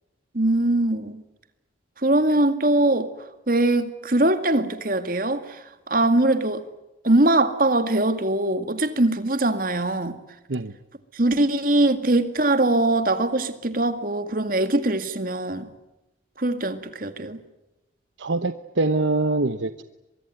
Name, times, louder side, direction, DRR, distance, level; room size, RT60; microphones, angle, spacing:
voice 1, 0.3-1.2 2.0-3.1 3.5-5.6 5.9-6.6 7.0-10.2 11.1-15.7 16.4-17.4, right 2 dB, 50° right, 2.1 m, -22 dB
voice 2, 18.2-19.8, right 2 dB, 80° right, 1.0 m, -24 dB
23.5 x 23.0 x 9.5 m
head